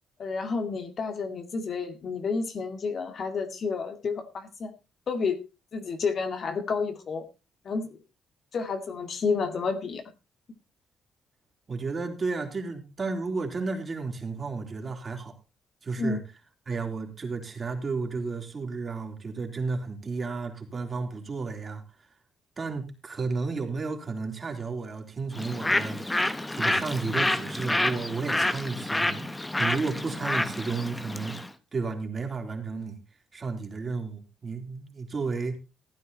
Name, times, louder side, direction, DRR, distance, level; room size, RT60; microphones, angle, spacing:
voice 1, 0.2-4.7 5.1-5.4 5.7-7.2 7.6-8.0 8.5-10.0 16.0-16.2, left 4 dB, 50° left, 7 dB, 2.3 m, -30 dB
voice 2, 11.7-15.3 15.8-16.2 16.7-21.8 22.6-29.3 29.6-31.4 31.7-33.0 33.3-35.6, right 4 dB, 35° right, 3 dB, 3.7 m, -32 dB
Bird, 25.3-31.5, left 1 dB, 15° left, 1.2 m, -28 dB
15.5 x 9.3 x 4.2 m, 0.29 s
cardioid pair, 90°, 0 cm